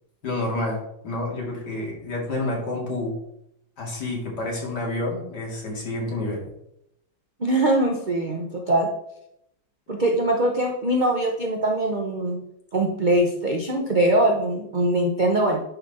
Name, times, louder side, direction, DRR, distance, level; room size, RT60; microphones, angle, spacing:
voice 1, 0.2-3.2 3.8-6.5, left 2 dB, 55° left, -2 dB, 2.7 m, -29 dB
voice 2, 7.4-8.9 9.9-12.4 12.7-15.6, right 1 dB, 65° right, 2 dB, 0.4 m, -22 dB
10.5 x 4.1 x 4.1 m, 0.78 s
omnidirectional pair, 2.1 m